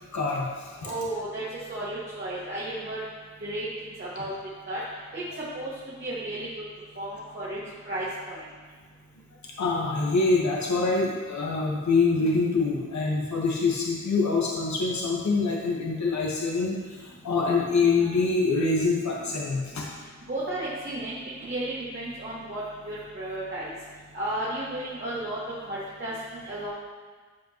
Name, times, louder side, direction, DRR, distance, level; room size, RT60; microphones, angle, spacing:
voice 1, 0.1-1.0 9.6-19.9, left 3 dB, 70° left, -3 dB, 1.3 m, -25 dB
voice 2, 0.8-1.4 1.7-3.0 3.4-3.7 4.0-4.3 4.7-4.8 5.1-5.2 5.5-5.7 6.0-6.5 7.0-7.1 7.3-7.6 7.9-8.4 20.3-23.7 24.1-26.7, right 1 dB, 40° right, -9 dB, 2.0 m, -33 dB
13.5 x 5.1 x 3.0 m, 1.5 s
wide cardioid pair, 125°, 30 cm